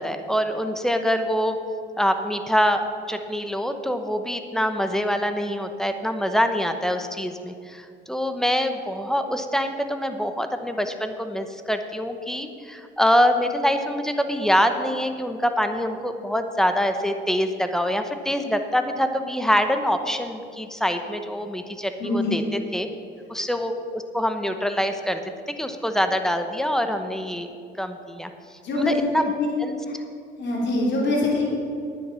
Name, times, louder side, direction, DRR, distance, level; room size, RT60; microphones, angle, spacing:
voice 1, 0.0-1.6 2.0-22.9 23.3-25.2 25.6-27.5 27.8-28.3 28.8-29.3 29.6-29.7, equal, ahead, 7 dB, 1.0 m, -25 dB
voice 2, 28.6-28.9 29.3-29.5 29.9-30.0 30.4-31.4, left 2 dB, 65° left, -3 dB, 3.1 m, -24 dB
9.9 x 9.6 x 5.8 m, 2.5 s
cardioid pair, 90°, 20 cm